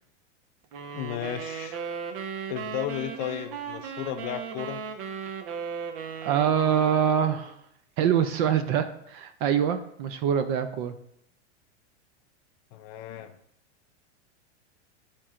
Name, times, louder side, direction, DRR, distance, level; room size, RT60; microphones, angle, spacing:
sound 1, 0.7-7.5, right 6 dB, 50° right, 0.9 m, -37 dB
voice 1, 0.9-1.8 2.5-4.8 12.7-13.3, left 11 dB, 35° left, 8 dB, 0.4 m, -34 dB
voice 2, 6.2-7.5 8.0-10.9, right 8 dB, 35° right, 9 dB, 0.4 m, -24 dB
11.0 x 4.4 x 2.4 m, 0.74 s
supercardioid pair, 145°, 36 cm